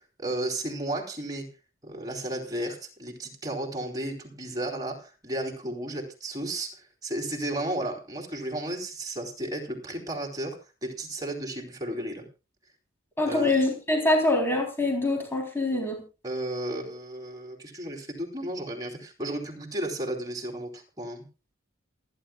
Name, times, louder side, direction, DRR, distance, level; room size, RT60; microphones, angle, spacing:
voice 1, 0.2-1.5 1.8-12.3 13.3-13.6 16.2-21.3, right 1 dB, 20° right, 1 dB, 4.1 m, -33 dB
voice 2, 13.2-16.0, left 2 dB, 10° left, 1 dB, 3.7 m, -24 dB
27.5 x 10.5 x 2.4 m, 0.30 s
head